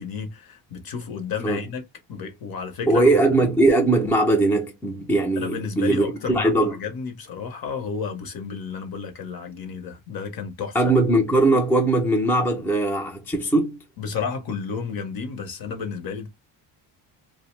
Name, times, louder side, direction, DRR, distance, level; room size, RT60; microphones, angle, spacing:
voice 1, 0.0-1.8 2.1-3.1 5.4-10.8 14.0-16.3, left 6 dB, 50° left, 0.8 m, -32 dB
voice 2, 2.9-6.7 10.7-13.8, right 2 dB, 5° left, 0.4 m, -20 dB
2.6 x 2.0 x 3.0 m
cardioid pair, 145°, 46 cm